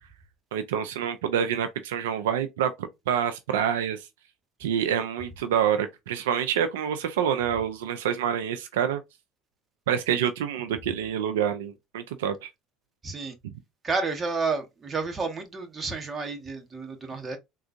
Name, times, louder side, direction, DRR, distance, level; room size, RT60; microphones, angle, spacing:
voice 1, 0.5-4.1 4.6-9.0 9.9-12.5, right 9 dB, 85° right, 0.4 m, -27 dB
voice 2, 13.0-13.3 13.8-17.4, right 4 dB, 25° right, 1.1 m, -30 dB
3.7 x 2.4 x 2.5 m
hypercardioid pair, 85°, 0 cm